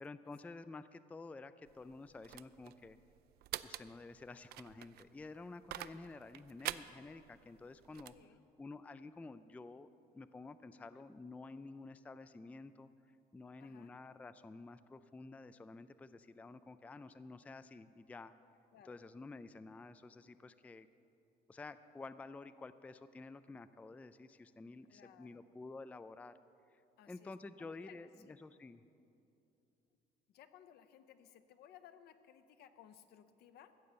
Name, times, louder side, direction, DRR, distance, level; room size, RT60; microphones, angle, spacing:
voice 1, 0.0-3.0 3.6-8.1 8.6-12.9 13.3-18.3 18.9-20.9 21.5-26.3 26.7-26.8 27.1-28.8, left 3 dB, 10° left, 13 dB, 0.3 m, -51 dB
sound 1, 1.6-8.2, right 14 dB, 70° right, 0.4 m, -47 dB
voice 2, 8.1-8.4 10.7-11.1 13.6-14.0 18.7-19.0 24.8-25.4 27.0-27.3 27.6-28.4 30.3-33.7, left 9 dB, 70° left, 10 dB, 0.8 m, -60 dB
15.0 x 7.8 x 6.8 m, 2.7 s
cardioid pair, 110°, 17 cm